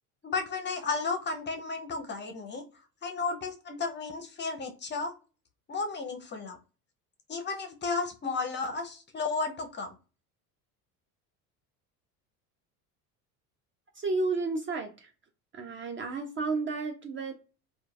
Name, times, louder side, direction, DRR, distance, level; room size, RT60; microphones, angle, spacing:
voice 1, 0.2-2.6 3.0-5.1 5.7-6.6 7.3-9.9, left 4 dB, 25° left, 6 dB, 0.5 m, -33 dB
voice 2, 14.0-15.1 15.5-17.3, right 3 dB, 30° right, 5 dB, 0.4 m, -32 dB
3.0 x 2.2 x 2.3 m, 0.33 s
hypercardioid pair, 80°, 45 cm